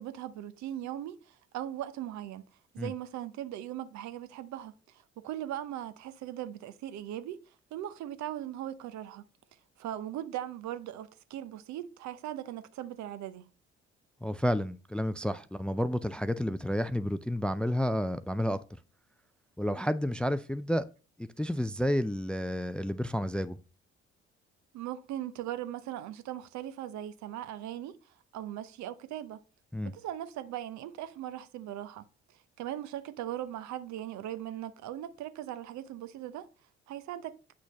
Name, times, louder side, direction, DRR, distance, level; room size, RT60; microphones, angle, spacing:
voice 1, 0.0-2.5 2.7-9.3 9.8-13.5 24.7-28.0 28.3-29.4 29.8-32.1 32.6-36.5 36.9-37.4, right 12 dB, 60° right, 0.8 m, -39 dB
voice 2, 14.2-18.6 19.6-20.9 21.4-23.6 29.7-29.9, equal, 5° left, 0.4 m, -30 dB
8.5 x 6.2 x 3.0 m
figure-of-eight pair, 45°, 33 cm